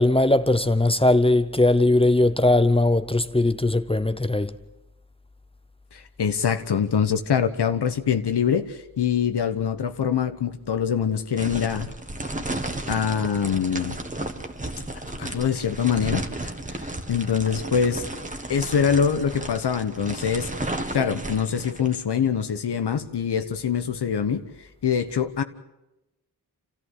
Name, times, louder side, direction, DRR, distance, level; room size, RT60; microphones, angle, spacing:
voice 1, 0.0-4.6, left 2 dB, 15° left, 0.8 m, -19 dB
voice 2, 5.9-11.9 12.9-13.9 15.2-16.5 16.8-18.0 18.5-24.4 24.8-25.4, left 7 dB, 70° left, 1.2 m, -24 dB
sound 1, 11.4-22.0, right 1 dB, 20° right, 1.7 m, -33 dB
29.5 x 14.5 x 8.1 m
wide cardioid pair, 120°, 41 cm